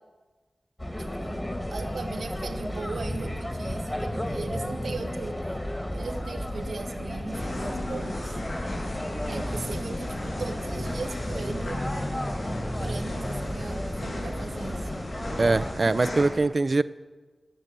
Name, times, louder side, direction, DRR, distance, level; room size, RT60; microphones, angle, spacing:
sound 1, 0.8-15.7, left 1 dB, 20° left, 1.7 m, -33 dB
voice 1, 1.0-5.4 5.9-8.4 9.3-11.8 12.8-14.8, right 4 dB, 85° right, 5 dB, 1.3 m, -38 dB
sound 2, 7.3-16.3, left 1 dB, 80° left, 5.6 m, -37 dB
voice 2, 15.4-16.8, right 3 dB, 50° right, 15 dB, 0.5 m, -23 dB
17.0 x 6.6 x 9.2 m, 1.3 s
wide cardioid pair, 60°, 0 cm